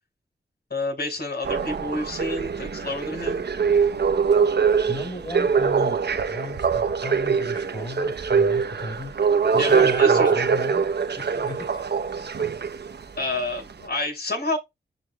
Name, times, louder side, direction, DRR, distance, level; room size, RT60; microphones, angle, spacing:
voice 1, 0.7-3.4 9.6-10.3 13.2-14.6, left 2 dB, 60° left, 5.8 m, -29 dB
sound 1, 1.4-13.0 13.7-13.8, right 6 dB, 65° right, 1.0 m, -23 dB
voice 2, 4.9-6.0 6.3-9.2 9.5-10.9 11.2-11.9, left 2 dB, 25° left, 5.0 m, -35 dB
11.0 x 5.1 x 2.4 m
cardioid pair, 40°, 19 cm